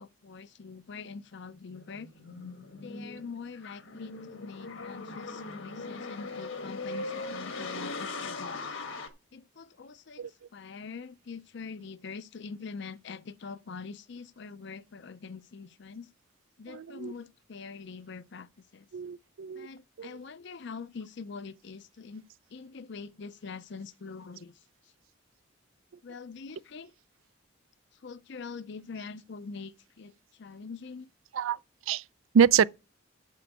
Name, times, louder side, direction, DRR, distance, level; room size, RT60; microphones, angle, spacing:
voice 1, 0.0-2.1 2.8-8.8 9.3-16.1 16.6-18.9 19.5-22.2 22.5-24.9 26.0-26.9 27.9-31.1, left 5 dB, 60° left, 0.5 m, -44 dB
sound 1, 1.7-9.1, left 3 dB, 75° left, 1.3 m, -39 dB
voice 2, 16.7-17.1 18.9-19.7 20.0-20.1 31.3-31.6 31.9-32.0 32.3-32.7, right 7 dB, 80° right, 0.4 m, -25 dB
7.6 x 7.0 x 6.1 m
head